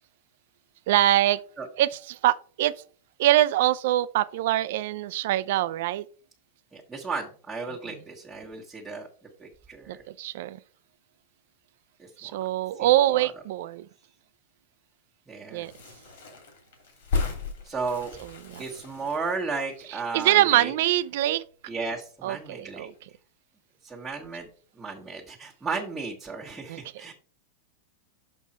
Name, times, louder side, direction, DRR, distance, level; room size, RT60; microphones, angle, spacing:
voice 1, 0.9-1.4 1.8-2.7 3.2-6.0 9.9-10.6 12.2-13.9 15.5-15.7 18.5-18.6 20.1-21.4 22.2-22.9 26.7-26.8, right 14 dB, 65° right, 0.5 m, -24 dB
voice 2, 6.7-9.1 9.4-10.0 12.0-12.3 12.8-13.3 15.3-15.7 17.6-18.1 18.6-20.7 21.7-22.9 23.8-24.5 24.7-27.1, right 4 dB, 10° right, 1.4 m, -34 dB
sound 1, 15.5-21.1 21.4-21.5 21.7-22.6 22.9-23.2, left 4 dB, 75° left, 2.9 m, -36 dB
6.2 x 5.5 x 4.3 m
supercardioid pair, 135°, 0 cm